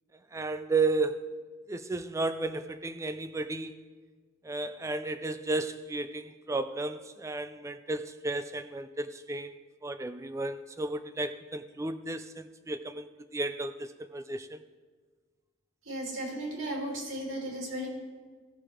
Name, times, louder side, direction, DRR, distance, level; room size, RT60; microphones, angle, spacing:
voice 1, 0.3-3.7 4.4-9.5 9.8-14.6, right 3 dB, 15° right, 0.3 m, -33 dB
voice 2, 15.8-17.9, right 1 dB, 70° right, 2.7 m, -35 dB
15.5 x 6.6 x 4.4 m
head